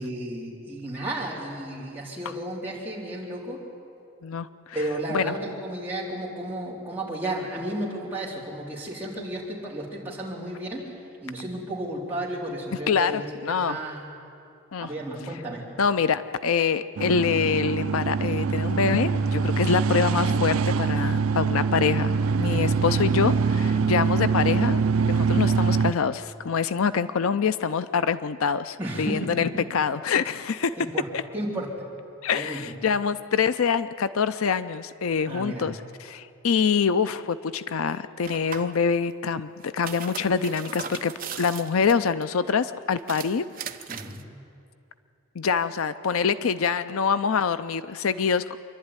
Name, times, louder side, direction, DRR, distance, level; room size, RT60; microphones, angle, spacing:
voice 1, 0.0-3.6 4.7-10.8 11.2-14.1 14.8-15.6 23.7-23.9 28.8-29.6 30.8-31.1 31.3-31.9 32.3-32.7 35.3-35.7 43.9-44.3, right 1 dB, 10° right, -6 dB, 3.8 m, -33 dB
voice 2, 4.2-4.8 5.1-5.3 12.9-13.8 14.7-14.9 15.8-24.8 25.1-30.8 31.1-31.2 32.2-43.4 45.4-48.6, left 6 dB, 75° left, 13 dB, 0.5 m, -25 dB
sound 1, 17.0-25.9, right 5 dB, 70° right, 0.4 m, -24 dB
Fridge & Freezer, 38.2-38.8 39.6-42.2 43.0-44.2, right 7 dB, 40° right, 0.8 m, -38 dB
26.5 x 11.5 x 9.8 m, 2.5 s
head